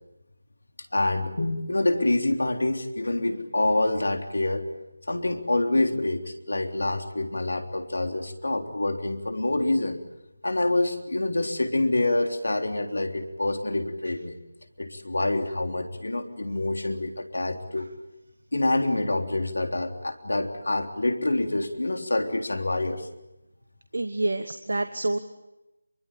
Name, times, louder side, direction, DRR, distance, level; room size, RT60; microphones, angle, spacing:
voice 1, 0.9-4.6 5.1-10.0 10.4-14.3 14.8-17.9 18.5-23.1, left 2 dB, 65° left, 5 dB, 3.6 m, -26 dB
voice 2, 23.9-25.2, right 2 dB, 60° right, 9 dB, 1.4 m, -27 dB
26.0 x 24.0 x 8.7 m, 0.95 s
figure-of-eight pair, 160°, 0 cm